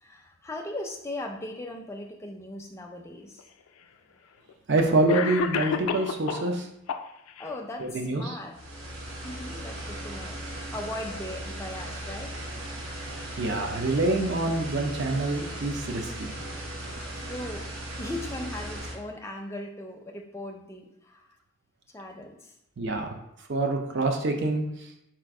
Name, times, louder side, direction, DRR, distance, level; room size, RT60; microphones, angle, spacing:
voice 1, 0.0-3.4 7.4-8.5 9.2-10.4 10.7-12.4 17.1-17.6 18.0-21.3 21.9-22.5, left 1 dB, 15° left, 2 dB, 0.4 m, -38 dB
Cough, 3.4-3.5 4.5-4.6 5.1-6.5 6.9-7.5, left 6 dB, 80° left, 0.3 m, -30 dB
voice 2, 4.7-6.7 7.8-8.4 13.4-16.3 22.8-23.1 23.5-24.6, right 2 dB, 55° right, 4 dB, 0.6 m, -26 dB
sound 1, 8.5-18.9, right 1 dB, 75° right, 1.0 m, -37 dB
4.3 x 2.4 x 4.7 m, 0.81 s
head